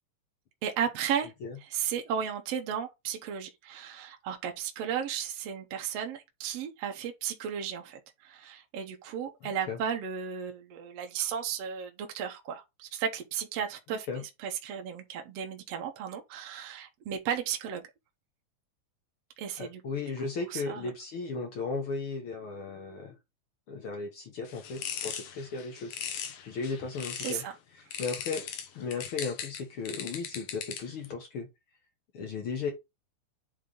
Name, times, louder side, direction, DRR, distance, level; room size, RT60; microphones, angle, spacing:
voice 1, 0.6-1.3 1.6-17.9 19.4-19.8 20.5-20.9 27.2-27.5, right 8 dB, 65° right, 2.0 m, -34 dB
voice 2, 9.4-9.8 14.1-14.2 19.6-23.2 23.7-26.0 26.4-27.4 28.0-28.5 28.7-31.5 32.1-32.7, left 4 dB, 60° left, 1.6 m, -35 dB
sound 1, 24.5-27.5 27.9-31.1, left 8 dB, 80° left, 2.5 m, -39 dB
8.6 x 3.6 x 3.9 m
omnidirectional pair, 3.4 m